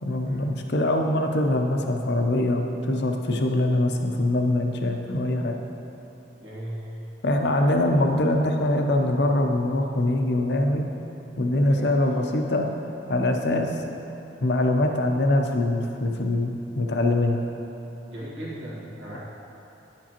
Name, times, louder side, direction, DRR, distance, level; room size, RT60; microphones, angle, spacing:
voice 1, 0.0-5.5 7.2-10.9 11.4-12.7 13.1-13.8 14.4-17.4, left 1 dB, 60° left, 3 dB, 0.6 m, -23 dB
voice 2, 6.4-7.0 11.6-12.0 13.4-13.6 18.1-19.2, right 1 dB, 80° right, -7 dB, 1.8 m, -37 dB
10.5 x 7.3 x 3.0 m, 3.0 s
head